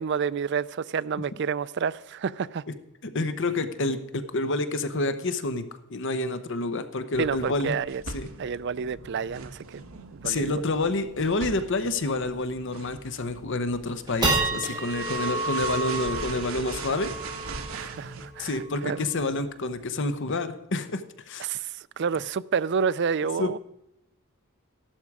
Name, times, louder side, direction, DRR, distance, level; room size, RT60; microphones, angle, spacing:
voice 1, 0.0-2.6 7.2-8.0 8.4-9.8 10.1-10.6 17.7-19.1 21.4-23.6, right 6 dB, 55° right, 0.4 m, -29 dB
voice 2, 3.0-5.6 5.9-7.8 8.1-8.3 10.2-17.1 18.4-21.0 21.3-21.5 23.4-23.6, left 2 dB, 60° left, 0.9 m, -28 dB
sound 1, 7.1-18.3, right 3 dB, 80° right, 1.3 m, -40 dB
sound 2, 10.7-10.8 11.1-11.2 11.6-11.8 12.3-12.4 12.9-13.3 13.7-20.3, right 2 dB, 20° right, 4.6 m, -32 dB
14.0 x 12.0 x 4.9 m
head